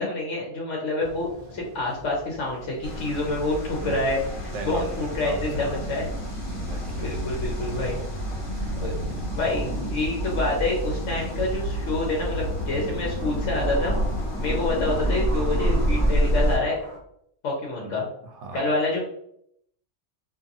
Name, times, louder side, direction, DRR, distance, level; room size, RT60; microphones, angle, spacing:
voice 1, 0.0-6.0 7.0-8.0 8.8-8.9 9.3-14.0 14.4-16.8 17.4-18.0 18.5-19.0, left 2 dB, 75° left, -2 dB, 1.0 m, -27 dB
sound 1, 1.0-17.0, equal, 40° right, 0.7 m, -45 dB
sound 2, 2.8-16.6, equal, 45° left, 1.5 m, -28 dB
voice 2, 4.5-5.7 6.5-7.2 8.6-8.8 17.8-18.7, right 3 dB, 70° right, 3 dB, 0.9 m, -39 dB
2.7 x 2.6 x 2.6 m, 0.72 s
omnidirectional pair, 1.3 m